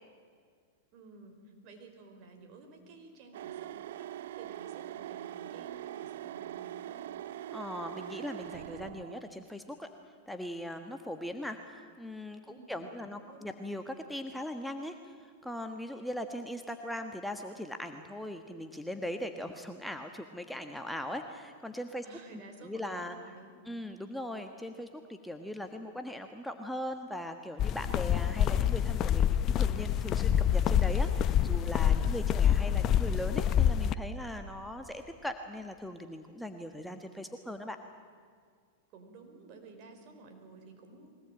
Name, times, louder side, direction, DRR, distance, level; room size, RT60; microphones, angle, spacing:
voice 1, 0.9-1.4 1.6-4.1 4.3-7.1 12.4-13.5 22.0-23.5 31.9-32.3 38.9-41.1, right 3 dB, 45° right, 5 dB, 4.7 m, -53 dB
sound 1, 3.3-9.2, right 12 dB, 70° right, 0.5 m, -42 dB
voice 2, 7.5-9.9 10.3-15.1 15.4-22.0 22.6-23.2 23.6-37.8, left 1 dB, ahead, 5 dB, 1.3 m, -40 dB
sound 2, 27.6-33.9, left 9 dB, 35° left, 0.8 m, -27 dB
23.0 x 18.5 x 9.0 m, 2.1 s
hypercardioid pair, 115°, 0 cm